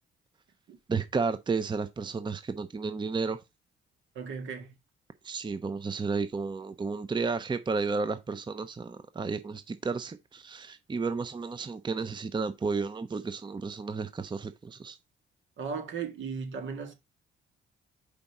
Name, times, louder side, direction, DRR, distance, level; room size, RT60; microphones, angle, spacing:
voice 1, 0.9-3.4 5.2-15.0, right 4 dB, 25° right, 0.7 m, -32 dB
voice 2, 4.2-4.7 15.6-16.9, right 5 dB, 70° right, 1.8 m, -36 dB
5.1 x 4.1 x 5.9 m
cardioid pair, 90°, 20 cm